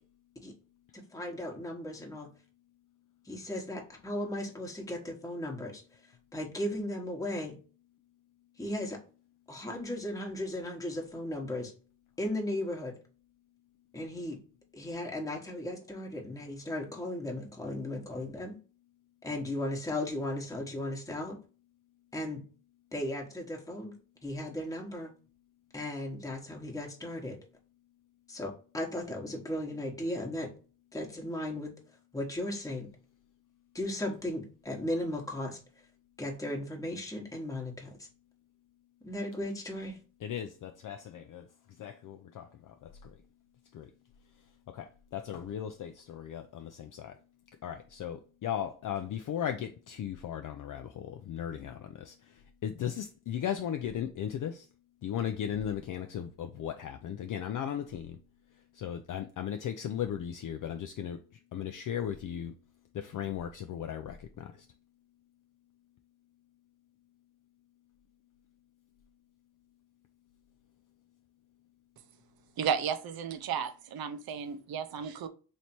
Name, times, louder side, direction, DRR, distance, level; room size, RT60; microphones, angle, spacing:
voice 1, 1.1-2.3 3.2-5.8 6.3-7.5 8.6-9.0 9.5-11.7 12.2-12.9 13.9-14.4 14.7-18.6 19.2-21.4 22.1-22.4 22.9-23.9 24.2-25.1 25.7-27.4 28.3-30.5 30.9-31.7 32.1-32.9 33.7-35.6 36.2-38.1 39.0-40.0, left 1 dB, 10° left, 1.1 m, -36 dB
voice 2, 40.2-41.4 41.8-43.1 43.7-43.9 44.7-47.1 47.6-52.1 52.6-54.6 55.0-58.2 58.8-61.2 61.5-62.5 62.9-64.5, left 9 dB, 50° left, 0.4 m, -36 dB
voice 3, 72.6-75.3, right 7 dB, 65° right, 0.7 m, -33 dB
3.2 x 2.8 x 4.3 m
cardioid pair, 85°, 40 cm